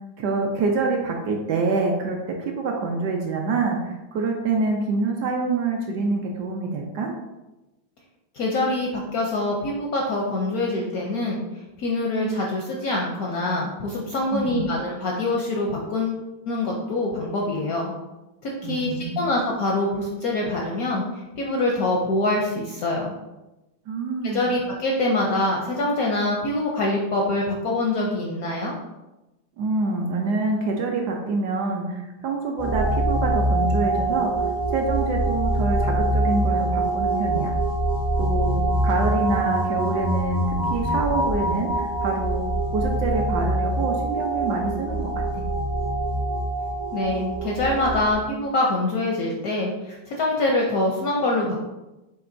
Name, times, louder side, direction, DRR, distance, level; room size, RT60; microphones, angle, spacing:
voice 1, 0.2-7.1 14.3-14.7 18.6-19.3 23.9-24.5 29.6-37.5 38.2-42.5 42.7-45.4, right 3 dB, 70° right, 1 dB, 1.1 m, -26 dB
voice 2, 8.3-17.9 18.4-23.1 24.3-28.7 46.9-51.6, left 2 dB, 70° left, -1 dB, 0.8 m, -25 dB
sound 1, 32.6-48.1, right 1 dB, 5° right, 0.4 m, -24 dB
6.6 x 2.9 x 2.6 m, 1.0 s
omnidirectional pair, 2.1 m